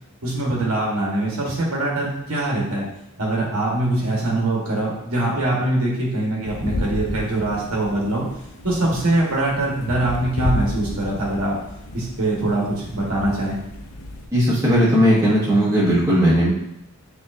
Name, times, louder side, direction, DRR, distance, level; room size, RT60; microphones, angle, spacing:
voice 1, 0.2-2.9 3.2-8.2 8.6-11.5 11.9-12.6 12.9-13.6, right 2 dB, 70° right, -3 dB, 1.2 m, -23 dB
sound 1, 6.5-14.3, left 2 dB, 70° left, 0.6 m, -31 dB
voice 2, 14.3-16.5, equal, 15° right, -7 dB, 1.4 m, -17 dB
6.3 x 3.0 x 2.5 m, 0.86 s
head